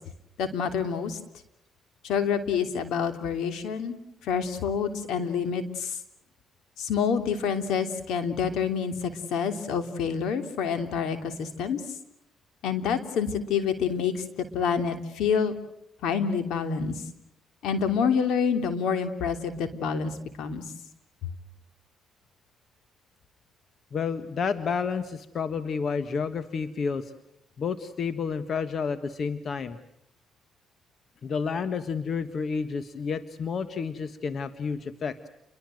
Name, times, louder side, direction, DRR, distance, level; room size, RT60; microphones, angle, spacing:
voice 1, 0.4-1.2 2.0-4.0 4.2-6.0 6.8-11.8 12.6-14.2 14.5-15.5 16.0-17.0 17.6-20.1 20.4-20.6, left 6 dB, 85° left, 8 dB, 3.2 m, -27 dB
voice 2, 23.9-27.1 27.6-29.8 31.2-35.3, left 5 dB, 55° left, 11 dB, 1.5 m, -30 dB
30.0 x 23.5 x 7.8 m, 0.81 s
cardioid pair, 90°, 0 cm